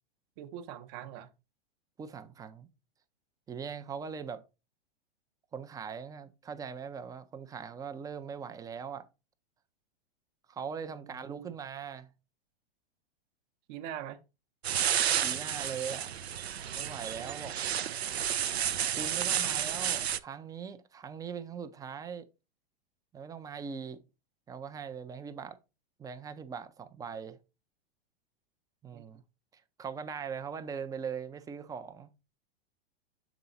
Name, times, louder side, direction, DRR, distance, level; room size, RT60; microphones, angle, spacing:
voice 1, 0.4-1.3 11.0-11.6 13.7-14.2 28.9-29.1, right 10 dB, 45° right, 0.8 m, -43 dB
voice 2, 2.0-2.7 3.5-4.4 5.5-9.1 10.5-12.1 15.2-16.1 16.7-17.5 19.0-22.3 23.1-24.0 24.5-25.6 26.0-27.4 28.8-29.2 29.8-32.1, right 6 dB, 10° right, 0.5 m, -40 dB
sound 1, 14.6-20.2, right 9 dB, 90° right, 0.5 m, -31 dB
7.1 x 3.8 x 3.9 m
hypercardioid pair, 105°, 31 cm